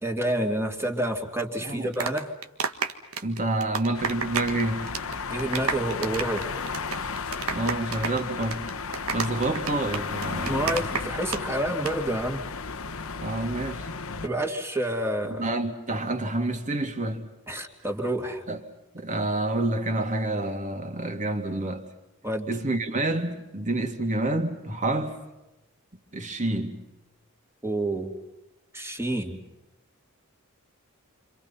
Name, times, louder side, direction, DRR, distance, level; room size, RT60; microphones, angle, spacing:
voice 1, 0.0-2.3 5.3-6.5 10.5-12.4 14.2-15.5 17.5-18.4 22.2-22.5 27.6-28.1 28.7-29.4, right 1 dB, 10° right, 2.9 m, -28 dB
sound 1, 1.7-4.6 4.9-5.1 5.4-11.4 11.7-11.9, right 5 dB, 70° right, 1.7 m, -30 dB
voice 2, 3.2-5.0 7.5-8.7 9.1-10.8 13.2-13.9 15.3-17.3 18.5-18.6 18.9-21.8 22.5-25.2 26.1-26.8, right 2 dB, 35° right, 2.8 m, -28 dB
sound 2, 3.9-14.3, left 5 dB, 70° left, 1.2 m, -34 dB
29.5 x 26.5 x 5.7 m
head